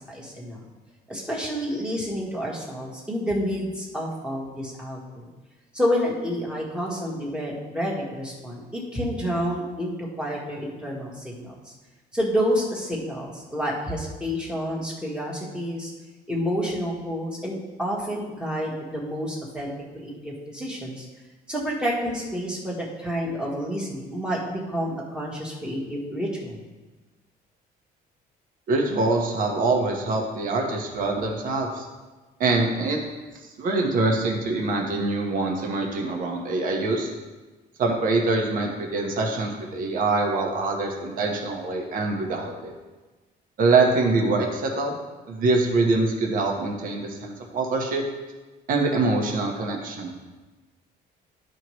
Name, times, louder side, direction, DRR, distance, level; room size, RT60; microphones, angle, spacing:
voice 1, 0.1-0.7 1.1-5.3 5.7-11.7 12.1-15.9 16.3-21.0 21.5-26.6, equal, 5° right, -4 dB, 1.4 m, -29 dB
voice 2, 28.7-31.9 32.4-33.0 33.6-37.1 37.8-42.7 43.6-45.0 45.3-48.0 48.7-50.1, right 3 dB, 55° right, 1 dB, 1.3 m, -24 dB
12.5 x 4.6 x 3.2 m, 1.2 s
cardioid pair, 165°, 17 cm